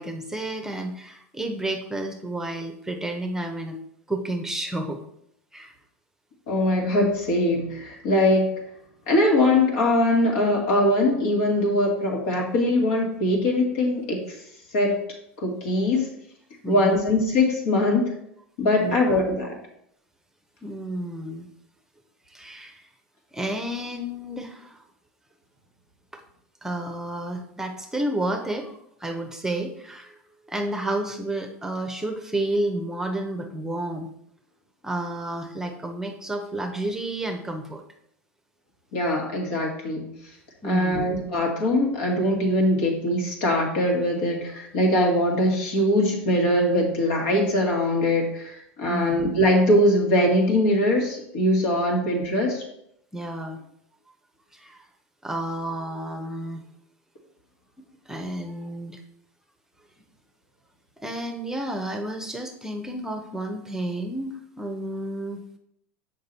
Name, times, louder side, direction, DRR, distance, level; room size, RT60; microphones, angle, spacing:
voice 1, 0.0-3.8 4.1-5.0 5.5-5.7 16.6-17.0 18.8-19.3 20.6-21.5 22.3-22.9 23.3-24.8 26.6-30.2 30.5-34.1 34.8-37.8 40.6-41.1 48.9-49.2 51.9-52.0 53.1-53.6 54.5-54.8 55.2-56.6 58.1-59.0 61.0-65.4, right 1 dB, 5° right, 4 dB, 0.9 m, -31 dB
voice 2, 6.5-8.5 9.1-14.4 14.7-15.0 15.4-16.1 16.7-18.1 18.6-19.6 38.9-40.0 40.6-52.7, left 1 dB, 65° left, 0 dB, 2.1 m, -22 dB
6.5 x 5.3 x 4.2 m, 0.75 s
hypercardioid pair, 90°, 7 cm